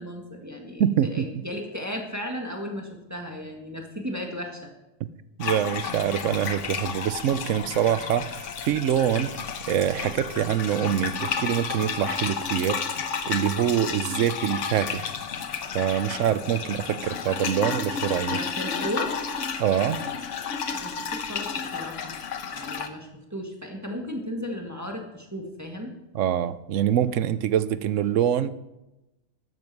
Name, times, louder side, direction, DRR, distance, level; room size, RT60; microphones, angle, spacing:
voice 1, 0.0-0.8 1.1-4.7 18.2-19.1 20.7-22.1 22.5-25.9, equal, 15° right, 1 dB, 1.7 m, -35 dB
voice 2, 0.8-1.2 5.4-9.4 9.7-12.8 13.3-15.1 15.7-18.4 19.6-20.0 26.1-28.5, right 10 dB, 80° right, 15 dB, 1.0 m, -25 dB
sound 1, 5.4-22.9, left 6 dB, 70° left, 1.3 m, -32 dB
13.0 x 10.5 x 4.7 m, 0.95 s
omnidirectional pair, 1.3 m